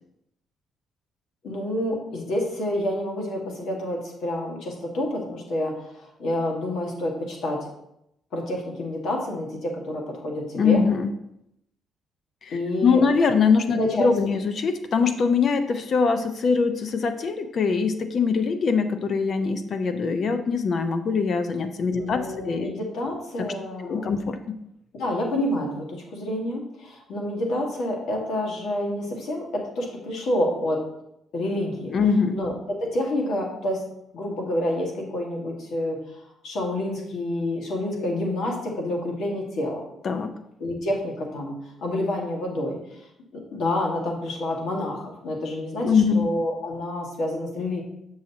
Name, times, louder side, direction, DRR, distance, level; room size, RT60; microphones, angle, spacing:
voice 1, 1.4-7.7 8.3-10.8 12.5-13.0 13.7-14.1 21.9-24.1 24.9-30.9 31.3-31.9 32.3-33.9 34.1-39.8 40.6-43.1 43.3-47.8, left 1 dB, 75° left, 0 dB, 1.7 m, -28 dB
voice 2, 10.5-11.1 12.4-22.7 23.4-23.5 23.8-24.6 31.9-32.4 40.0-40.4 45.8-46.2, left 5 dB, 55° left, 9 dB, 0.7 m, -23 dB
7.0 x 6.4 x 2.8 m, 0.80 s
cardioid pair, 90°, 0 cm